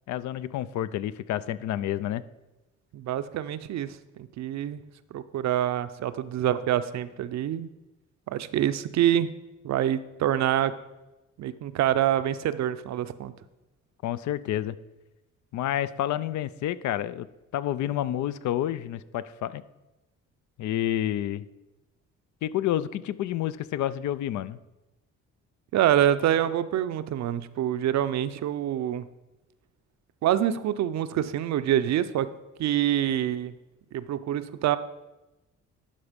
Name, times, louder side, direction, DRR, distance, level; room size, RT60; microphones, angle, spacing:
voice 1, 0.1-2.2 14.0-14.8 15.5-17.3 17.5-19.6 20.6-21.4 22.4-24.6, left 12 dB, 70° left, 16 dB, 0.5 m, -29 dB
voice 2, 2.9-4.8 5.1-7.7 8.3-9.3 9.6-10.7 11.4-13.3 25.7-29.1 30.2-32.3 32.6-33.5 33.9-34.8, right 11 dB, 65° right, 13 dB, 0.5 m, -26 dB
11.5 x 4.2 x 5.1 m, 1.0 s
cardioid pair, 90°, 30 cm